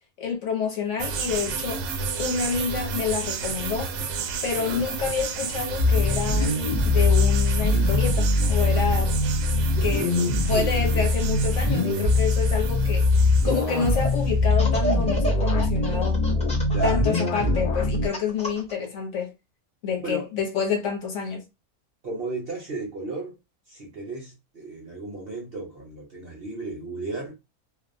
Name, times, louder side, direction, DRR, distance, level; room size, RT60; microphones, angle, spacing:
voice 1, 0.2-1.8 2.2-3.9 4.4-6.6 6.8-9.2 9.8-10.1 10.5-13.1 13.4-16.2 16.8-19.3 19.8-21.4, left 6 dB, 65° left, 0.9 m, -28 dB
sound 1, 1.0-14.3, right 5 dB, 75° right, 1.0 m, -32 dB
voice 2, 4.5-4.8 9.7-11.0 16.7-17.1 20.0-20.3 22.0-23.3 23.7-27.3, right 2 dB, 55° right, 0.7 m, -35 dB
sound 2, 5.8-18.1, left 2 dB, 85° left, 0.3 m, -22 dB
Laughter, 13.5-14.1 14.5-18.7, right 1 dB, 10° left, 0.4 m, -31 dB
2.5 x 2.0 x 2.5 m
omnidirectional pair, 1.6 m